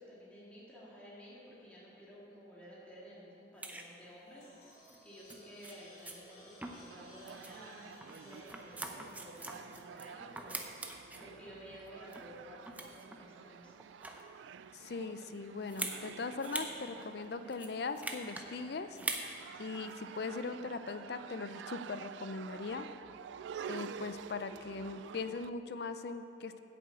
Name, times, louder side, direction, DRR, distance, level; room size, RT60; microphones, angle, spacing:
voice 1, 0.0-10.9 11.2-13.8, equal, 5° left, -8 dB, 2.2 m, -53 dB
sound 1, 3.6-3.9 4.9-5.0 5.3-5.4 5.6-5.7 6.1-6.2 6.6-7.0 7.3-7.5 8.0-10.1 10.4-11.3 11.8-12.3 12.6-13.2 13.8-14.3 15.7-16.0 16.4-16.7 17.0-17.1 17.5-18.5 18.9-19.3 19.7-19.9, right 2 dB, 10° right, 0.7 m, -42 dB
sound 2, 4.0-10.3, left 1 dB, 45° left, 2.7 m, -60 dB
sound 3, 6.9-25.5, right 7 dB, 85° right, 0.3 m, -50 dB
voice 2, 14.7-19.0 19.6-22.9 23.7-26.6, left 4 dB, 60° left, 10 dB, 0.5 m, -40 dB
9.6 x 7.1 x 8.2 m, 2.8 s
head